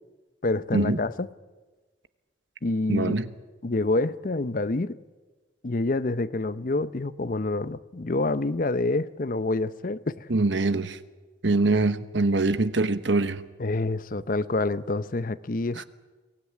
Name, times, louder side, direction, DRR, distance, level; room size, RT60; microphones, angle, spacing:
voice 1, 0.4-1.3 2.6-3.1 3.6-5.0 5.6-10.3 13.6-15.8, left 2 dB, 50° left, 0.7 m, -27 dB
voice 2, 2.9-3.3 10.3-11.0 11.4-13.4 15.7-15.8, right 3 dB, 90° right, 1.1 m, -23 dB
23.5 x 16.5 x 9.5 m
head